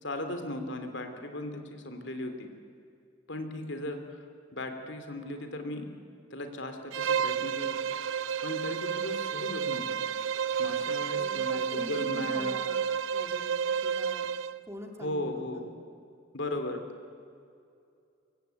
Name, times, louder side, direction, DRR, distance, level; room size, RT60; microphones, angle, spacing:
voice 1, 0.0-2.5 3.3-4.2 4.5-5.9 6.3-7.8 8.4-10.0 10.6-12.5 15.0-15.7 16.3-16.8, left 1 dB, 65° left, 6 dB, 2.9 m, -37 dB
Bowed string instrument, 6.9-14.6, right 7 dB, 80° right, 0.6 m, -31 dB
voice 2, 10.8-12.8 13.1-14.3 14.7-15.3 15.5-15.7, equal, 15° right, 3 dB, 2.4 m, -45 dB
24.0 x 23.5 x 9.3 m, 2.5 s
head